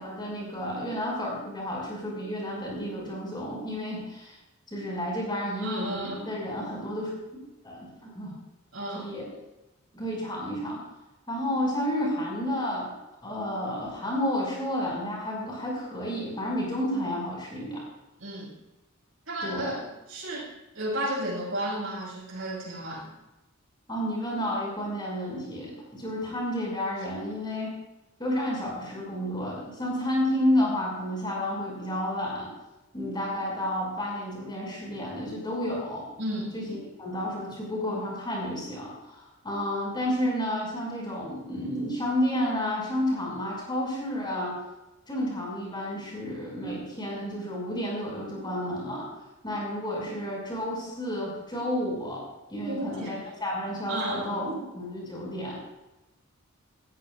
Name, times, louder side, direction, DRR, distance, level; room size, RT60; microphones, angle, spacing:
voice 1, 0.0-4.4 4.7-7.1 7.6-8.3 8.9-9.3 9.9-10.8 11.3-12.9 13.2-17.8 19.4-19.7 23.9-27.8 28.2-32.5 32.9-36.0 36.5-44.6 45.1-49.1 49.4-52.2 52.5-54.5 54.7-55.6, left 1 dB, 20° left, -3 dB, 5.8 m, -31 dB
voice 2, 5.6-6.3 8.7-9.1 18.2-18.5 19.3-23.1 36.2-36.5 52.7-53.1 53.9-54.7, right 1 dB, 65° right, -4 dB, 5.9 m, -33 dB
19.5 x 14.5 x 2.5 m, 0.99 s
head